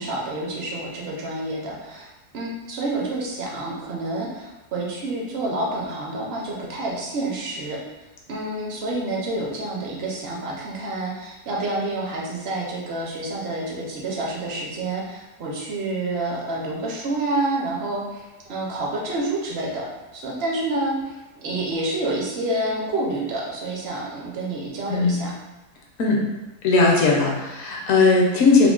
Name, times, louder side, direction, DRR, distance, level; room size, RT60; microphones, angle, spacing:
voice 1, 0.0-2.1 2.3-7.8 8.3-19.9 20.1-25.3, right 2 dB, 55° right, -3 dB, 0.7 m, -28 dB
voice 2, 26.6-28.7, left 3 dB, 70° left, -2 dB, 0.9 m, -18 dB
3.6 x 2.0 x 2.3 m, 1.0 s
omnidirectional pair, 1.6 m